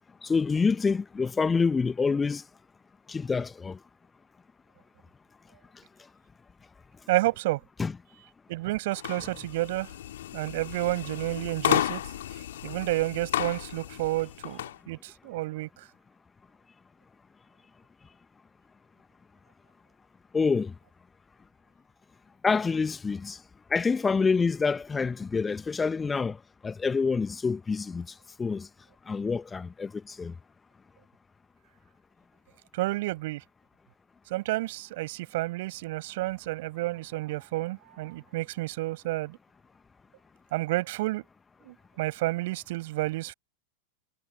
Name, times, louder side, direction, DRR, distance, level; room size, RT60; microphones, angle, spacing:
voice 1, 0.2-2.4 3.1-3.8 7.8-7.9 20.3-20.7 22.4-23.4 23.7-28.1 28.4-28.7 29.1-30.3, left 5 dB, 15° left, 1.4 m, -27 dB
voice 2, 7.1-7.6 8.5-9.9 10.3-12.0 12.6-15.7 32.7-33.4 34.3-39.4 40.5-41.2 41.6-43.3, right 19 dB, 50° right, 6.8 m, -30 dB
sound 1, 8.9-14.8, left 12 dB, 60° left, 2.5 m, -33 dB
figure-of-eight pair, 90°, 0 cm